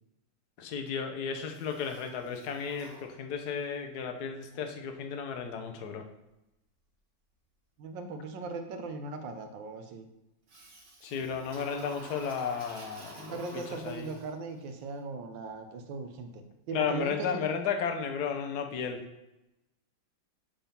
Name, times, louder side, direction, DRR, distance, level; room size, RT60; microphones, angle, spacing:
voice 1, 0.6-6.0 11.0-13.4 13.8-14.1 16.7-19.0, left 6 dB, 65° left, 5 dB, 1.3 m, -33 dB
Toilet flush, 1.5-3.7 10.5-14.6, right 2 dB, 45° right, 1.4 m, -50 dB
voice 2, 7.8-10.1 13.2-16.3 16.7-17.5, right 3 dB, 85° right, 6 dB, 1.5 m, -39 dB
7.0 x 3.7 x 5.7 m, 0.95 s
omnidirectional pair, 1.9 m